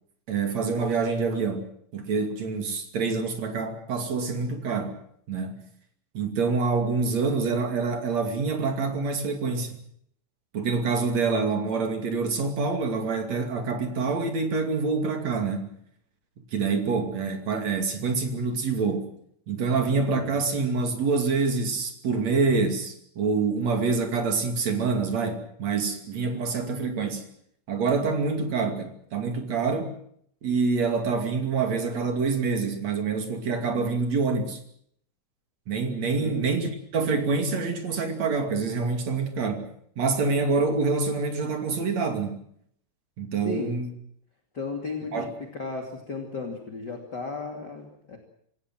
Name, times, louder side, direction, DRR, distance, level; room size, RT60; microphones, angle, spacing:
voice 1, 0.3-1.6 1.9-5.0 5.3-5.6 6.1-9.7 10.5-15.7 16.5-19.1 19.5-27.2 27.7-29.9 30.4-34.6 35.7-39.6 40.0-42.4 43.2-43.9 45.1-45.3, right 4 dB, 45° right, 5 dB, 3.1 m, -26 dB
voice 2, 44.5-45.2 45.5-48.2, left 4 dB, 30° left, 3 dB, 2.3 m, -34 dB
27.0 x 16.5 x 7.7 m, 0.68 s
omnidirectional pair, 5.4 m